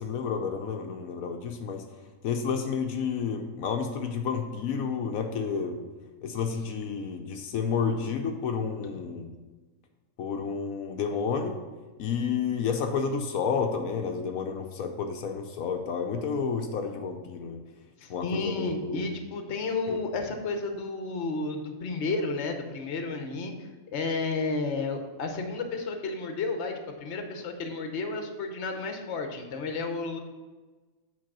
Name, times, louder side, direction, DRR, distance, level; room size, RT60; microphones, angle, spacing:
voice 1, 0.0-1.8 2.2-5.8 6.2-9.3 10.2-11.6 12.0-17.6 18.1-19.0 19.9-20.0, left 6 dB, 85° left, 4 dB, 1.1 m, -30 dB
voice 2, 18.0-30.2, left 3 dB, 55° left, 5 dB, 1.1 m, -32 dB
7.5 x 4.1 x 6.0 m, 1.3 s
omnidirectional pair, 1.4 m